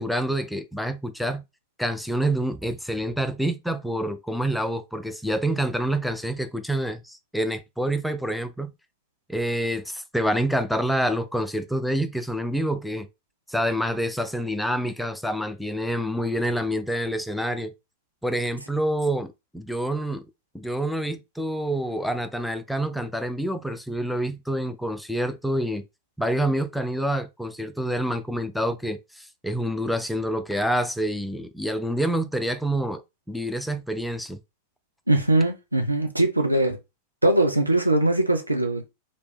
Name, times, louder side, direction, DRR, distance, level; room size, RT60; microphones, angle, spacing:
voice 1, 0.0-1.4 1.8-8.7 9.3-13.1 13.5-17.7 18.2-20.2 20.5-25.8 26.2-33.0 33.3-34.4, right 1 dB, ahead, 0.4 m, -27 dB
voice 2, 35.1-36.8 37.2-38.9, right 1 dB, 85° right, 0.8 m, -21 dB
3.3 x 2.9 x 4.4 m
figure-of-eight pair, 90°, 0 cm